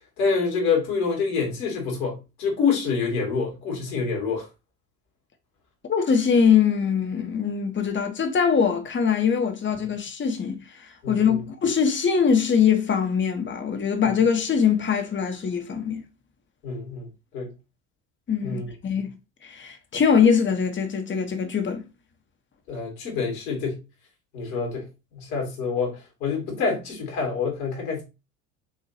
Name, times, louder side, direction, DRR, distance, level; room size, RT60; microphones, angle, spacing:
voice 1, 0.2-4.5 11.0-11.4 14.0-14.1 16.6-17.1 17.3-17.5 18.4-18.7 22.7-23.8 24.3-24.9 25.1-28.0, left 5 dB, 75° left, 2.2 m, -27 dB
voice 2, 5.9-16.0 18.3-19.1 19.4-21.8, left 6 dB, 25° left, 1.1 m, -22 dB
5.7 x 2.9 x 2.8 m
hypercardioid pair, 70°, 42 cm